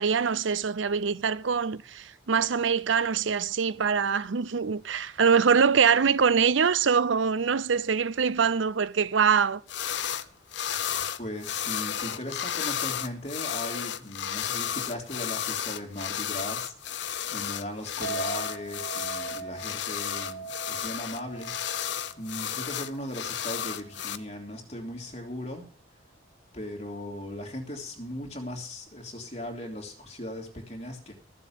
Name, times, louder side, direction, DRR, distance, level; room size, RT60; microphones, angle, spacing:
voice 1, 0.0-9.6, right 6 dB, 85° right, 0.6 m, -24 dB
sound 1, 9.7-10.3 10.5-24.2, left 9 dB, 70° left, 0.8 m, -33 dB
voice 2, 11.2-21.8 22.2-25.7 26.5-31.1, left 1 dB, 35° left, 3.1 m, -38 dB
Chink clink, 18.0-24.3, right 4 dB, 55° right, 3.9 m, -41 dB
14.5 x 7.5 x 7.4 m
head